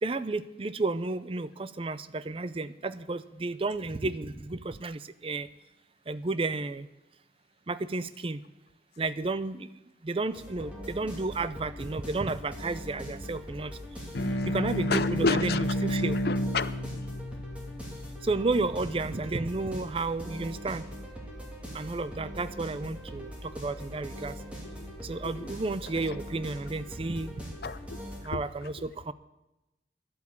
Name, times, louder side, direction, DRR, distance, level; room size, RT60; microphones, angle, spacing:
voice 1, 0.0-5.5 6.1-6.9 7.7-8.4 9.0-9.7 10.0-13.7 14.5-16.2 18.2-20.8 21.7-24.4 25.0-27.3 28.2-29.1, right 3 dB, 30° right, 15 dB, 0.5 m, -32 dB
sound 1, 10.3-28.2, equal, 5° right, 2.7 m, -42 dB
sound 2, 14.1-19.0, equal, 80° left, 1.1 m, -31 dB
voice 2, 14.9-15.7 16.2-16.7 24.7-24.9 25.2-25.5 25.9-26.2 27.6-28.0 28.3-29.1, left 4 dB, 60° left, 15 dB, 0.6 m, -31 dB
12.0 x 8.4 x 8.4 m, 0.99 s
head